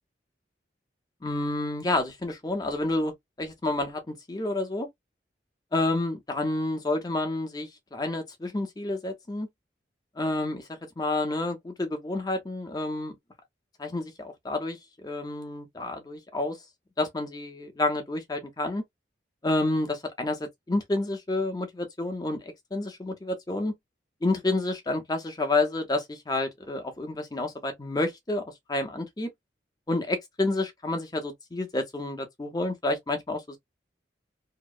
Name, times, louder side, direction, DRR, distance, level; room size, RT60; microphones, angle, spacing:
voice 1, 1.2-3.1 3.4-4.9 5.7-9.5 10.2-13.1 13.8-16.6 17.0-18.8 19.4-23.7 24.2-28.4 28.7-29.3 29.9-33.6, left 2 dB, 20° left, 0.6 m, -29 dB
2.8 x 2.0 x 2.3 m
head